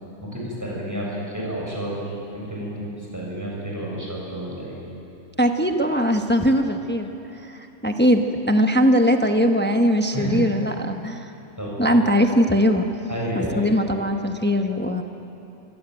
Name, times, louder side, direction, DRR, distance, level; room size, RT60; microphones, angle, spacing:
voice 1, 0.2-2.0 2.3-4.8 10.1-10.5 11.6-12.0 13.1-13.7, equal, 15° right, -5 dB, 7.1 m, -30 dB
voice 2, 5.4-7.1 7.4-11.3 11.8-13.0 13.3-15.0, equal, 10° left, 5 dB, 1.0 m, -20 dB
25.0 x 17.0 x 9.1 m, 2.9 s
omnidirectional pair, 1.3 m